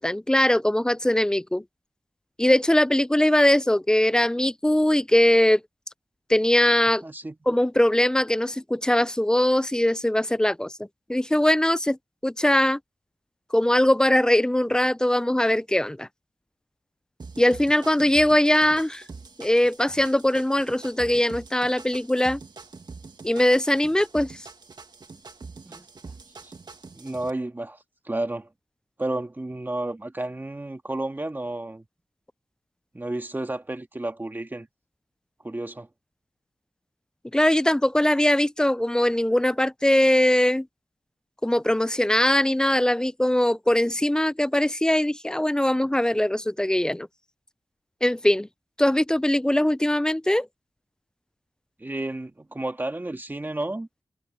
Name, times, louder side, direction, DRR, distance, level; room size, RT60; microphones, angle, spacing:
voice 1, 0.0-1.6 2.4-5.6 6.3-7.0 7.5-10.7 11.1-12.0 12.2-12.8 13.5-16.1 17.4-19.0 19.4-22.4 23.2-24.4 37.3-40.7 41.4-47.1 48.0-48.5 48.8-50.5, left 1 dB, 10° left, 0.3 m, -21 dB
voice 2, 7.0-7.4 25.7-25.9 26.4-26.5 26.9-27.8 28.1-28.5 29.0-31.8 32.9-34.7 35.4-35.9 51.8-53.9, right 2 dB, 20° right, 1.9 m, -31 dB
sound 1, 17.2-27.3, right 4 dB, 55° right, 1.9 m, -44 dB
wide cardioid pair, 100°, 9 cm